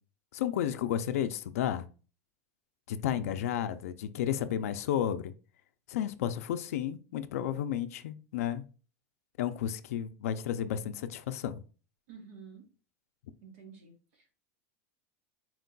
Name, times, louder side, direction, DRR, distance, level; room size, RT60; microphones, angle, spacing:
voice 1, 0.3-1.8 2.9-5.3 5.9-8.6 9.4-11.6, left 10 dB, 85° left, 0.4 m, -32 dB
voice 2, 3.1-3.7 12.1-12.7 13.4-14.4, right 5 dB, 60° right, 1.3 m, -52 dB
4.4 x 2.2 x 3.8 m
supercardioid pair, 175°, 8 cm